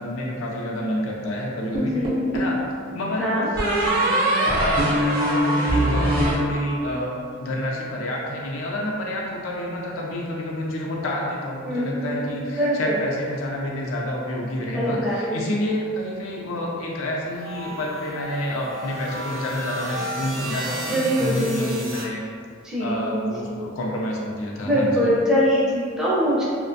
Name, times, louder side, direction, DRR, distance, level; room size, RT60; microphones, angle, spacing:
voice 1, 0.0-2.0 2.3-2.6 2.9-7.1 7.4-22.2 22.8-25.1, left 1 dB, 90° left, -2 dB, 0.4 m, -29 dB
sound 1, 1.7-2.6 3.6-7.0, right 1 dB, 50° right, 0.6 m, -22 dB
voice 2, 1.8-2.3 3.2-3.5 11.7-13.0 14.7-15.4 20.9-21.8 22.6-23.6 24.6-26.4, equal, 5° right, -7 dB, 0.5 m, -23 dB
sound 2, 17.3-22.1, right 1 dB, 85° right, 0.7 m, -33 dB
2.5 x 2.1 x 2.5 m, 2.2 s
head